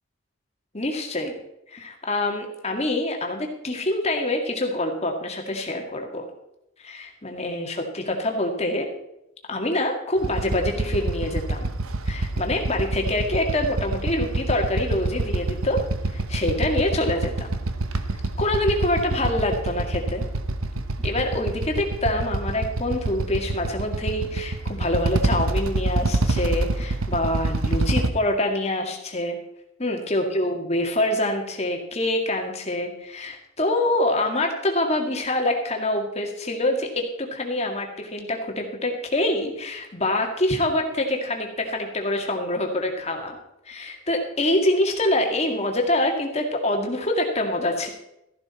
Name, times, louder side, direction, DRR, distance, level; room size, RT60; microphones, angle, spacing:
voice 1, 0.7-1.4 1.7-6.2 6.8-8.9 9.5-11.7 12.0-15.8 16.1-17.6 18.4-20.2 21.0-29.4 29.8-43.4 43.7-47.9, left 1 dB, 30° left, 3 dB, 2.1 m, -25 dB
Motorcycle / Idling, 10.2-28.1, right 2 dB, 80° right, 1.0 m, -26 dB
14.5 x 11.0 x 4.3 m, 0.84 s
head